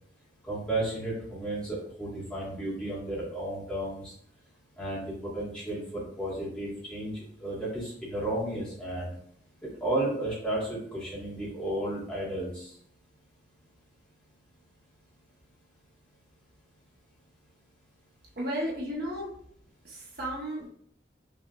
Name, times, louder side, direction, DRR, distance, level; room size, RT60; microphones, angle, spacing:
voice 1, 0.4-4.1 4.8-9.1 9.8-12.7, right 1 dB, 5° left, -8 dB, 1.8 m, -33 dB
voice 2, 18.3-19.3 19.8-20.7, equal, 55° right, -4 dB, 1.3 m, -33 dB
5.8 x 3.5 x 2.5 m, 0.65 s
head